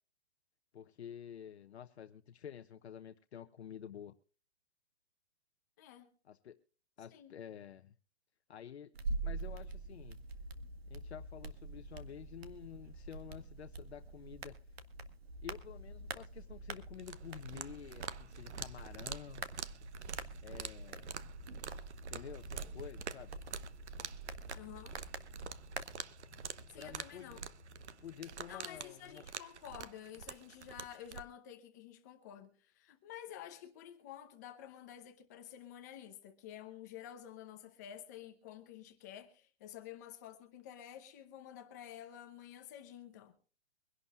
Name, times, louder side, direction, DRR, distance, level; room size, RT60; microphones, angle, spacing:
voice 1, 0.7-4.2 6.2-6.6 7.0-7.9 8.5-8.9 9.2-10.2 10.9-14.5 15.4-19.5 20.4-21.1 22.1-23.3 26.8-27.4 28.0-29.2, left 9 dB, 70° left, 0.9 m, -50 dB
voice 2, 5.8-6.1 7.1-7.3 24.5-25.0 26.7-27.4 28.5-43.3, left 10 dB, 15° left, 0.8 m, -51 dB
sound 1, 8.9-25.8, right 3 dB, 65° right, 1.6 m, -45 dB
sound 2, 16.9-31.2, right 7 dB, 85° right, 1.0 m, -47 dB
sound 3, 17.2-28.3, left 2 dB, 10° right, 5.4 m, -61 dB
24.0 x 11.5 x 2.4 m
hypercardioid pair, 170°, 33 cm